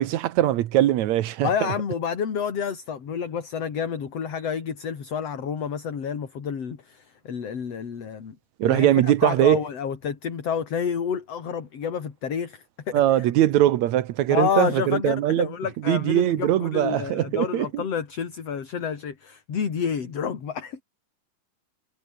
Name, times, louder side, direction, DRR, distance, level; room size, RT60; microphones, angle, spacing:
voice 1, 0.0-1.7 8.6-9.6 12.9-15.5 15.9-17.8, right 13 dB, 75° right, 2.3 m, -21 dB
voice 2, 1.4-8.4 8.6-13.3 14.3-20.8, left 7 dB, 55° left, 3.8 m, -29 dB
omnidirectional pair, 3.4 m